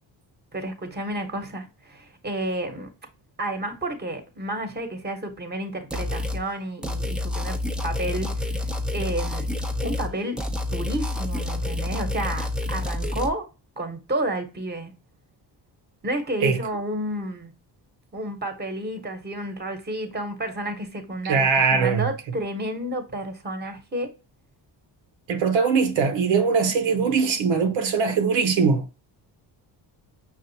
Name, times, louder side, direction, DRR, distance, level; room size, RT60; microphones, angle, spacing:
voice 1, 0.5-2.9 3.4-7.6 7.8-8.6 8.9-9.5 9.8-10.4 10.7-13.5 13.8-14.9 16.0-17.5 18.1-24.1, right 1 dB, 20° right, 1.1 m, -31 dB
sound 1, 5.9-6.4 6.8-10.1 10.4-13.3, left 2 dB, ahead, 0.5 m, -28 dB
voice 2, 21.2-22.1 25.3-28.8, right 5 dB, 85° right, 0.8 m, -21 dB
5.4 x 2.5 x 2.7 m
cardioid pair, 90°, 44 cm